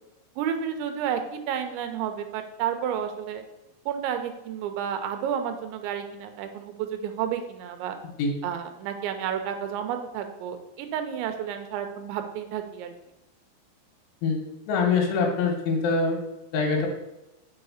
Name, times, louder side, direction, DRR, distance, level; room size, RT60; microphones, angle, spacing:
voice 1, 0.4-3.4 3.9-8.0 8.4-12.9, right 8 dB, 85° right, 7 dB, 3.1 m, -31 dB
voice 2, 14.7-16.2 16.5-16.9, left 4 dB, 85° left, 0 dB, 3.7 m, -24 dB
6.7 x 4.9 x 7.0 m, 0.92 s
omnidirectional pair, 5.3 m